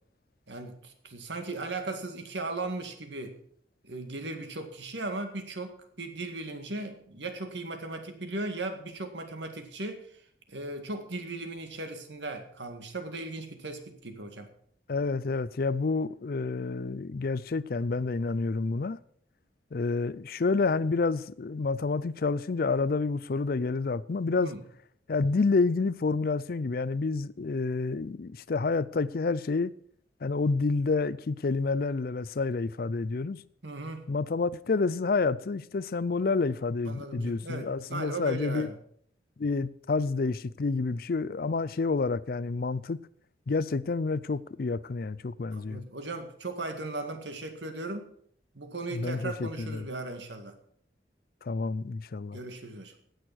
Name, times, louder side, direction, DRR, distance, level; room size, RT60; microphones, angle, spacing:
voice 1, 0.5-3.4 3.8-10.2 10.5-14.5 24.4-24.6 33.6-34.1 36.8-38.8 45.5-48.1 48.5-50.6 52.3-53.0, right 2 dB, 80° right, 2.0 m, -37 dB
voice 2, 14.9-19.0 19.7-24.5 25.1-29.7 30.2-33.4 34.1-38.7 39.4-43.0 43.5-45.8 48.9-49.8 51.4-52.4, left 4 dB, 55° left, 0.5 m, -29 dB
17.5 x 6.6 x 6.2 m
head